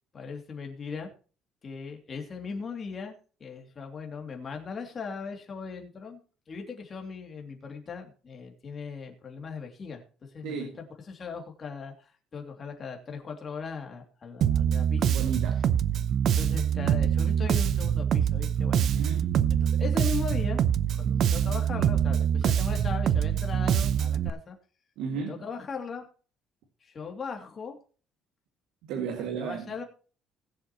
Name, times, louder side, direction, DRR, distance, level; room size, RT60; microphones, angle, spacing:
voice 1, 0.1-1.1 1.6-6.2 6.5-10.0 10.3-15.0 16.3-18.9 19.5-24.6 25.1-26.0 26.8-27.8 29.2-29.8, left 5 dB, 25° left, 2.6 m, -38 dB
voice 2, 10.4-10.8 15.0-15.6 18.9-19.4 25.0-25.3 28.9-29.7, right 6 dB, 85° right, 2.1 m, -34 dB
Bass guitar, 14.4-24.3, right 9 dB, 45° right, 0.6 m, -25 dB
20.5 x 7.5 x 3.0 m
cardioid pair, 170°, 0 cm